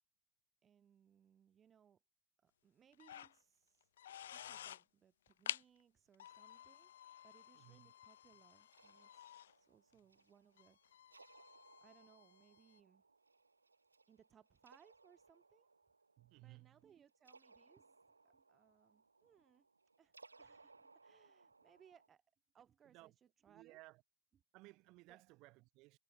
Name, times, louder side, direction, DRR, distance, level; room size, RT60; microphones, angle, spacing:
voice 1, 0.6-2.0 2.4-3.9 4.3-6.9 7.2-13.0 14.1-15.7 16.4-19.7 20.0-22.2 22.5-23.8 25.1-25.2, right 8 dB, 30° right, 2.5 m, -69 dB
sound 1, 2.9-3.3 3.8-4.8 5.3-5.6 6.1-9.5 9.9-10.0 10.6-12.8, left 11 dB, 70° left, 0.7 m, -51 dB
voice 2, 7.5-7.9 16.2-16.8 22.8-23.1 23.5-24.0 24.5-26.0, right 22 dB, 45° right, 5.4 m, -60 dB
sound 2, 8.7-22.1, right 3 dB, 85° right, 2.7 m, -67 dB
figure-of-eight pair, 80°, 0 cm